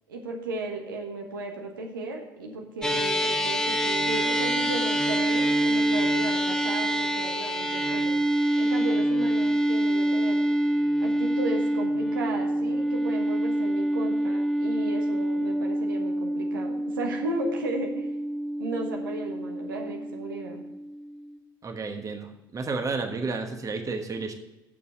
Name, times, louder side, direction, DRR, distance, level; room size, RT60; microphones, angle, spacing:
voice 1, 0.1-8.1 8.6-10.4 11.0-18.1 18.6-20.6, right 2 dB, 80° right, 1 dB, 1.2 m, -35 dB
sound 1, 2.8-21.4, right 1 dB, 5° left, 1.6 m, -26 dB
voice 2, 21.6-24.3, right 4 dB, 30° right, 5 dB, 1.3 m, -31 dB
7.3 x 6.9 x 6.8 m, 0.99 s
figure-of-eight pair, 60°, 11 cm